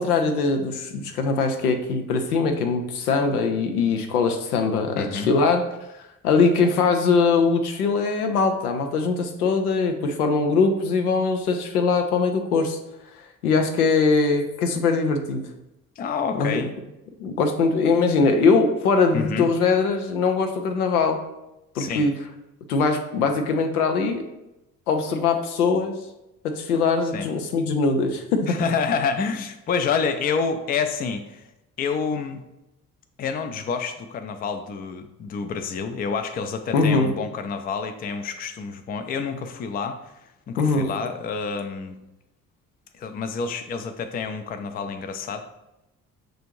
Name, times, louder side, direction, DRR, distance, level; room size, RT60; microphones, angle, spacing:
voice 1, 0.0-5.6 6.2-12.8 13.4-15.4 16.4-16.7 17.2-21.2 21.8-22.1 22.7-24.2 24.9-25.9 26.4-28.6 36.7-37.1 40.6-40.9, left 4 dB, 80° left, 5 dB, 0.5 m, -21 dB
voice 2, 4.9-5.3 16.0-16.7 19.1-19.5 21.7-22.1 27.1-27.3 28.5-31.5 31.8-32.4 33.2-42.0 42.9-45.4, left 5 dB, 20° left, 8 dB, 0.4 m, -28 dB
6.1 x 2.5 x 3.0 m, 0.92 s
figure-of-eight pair, 45°, 45 cm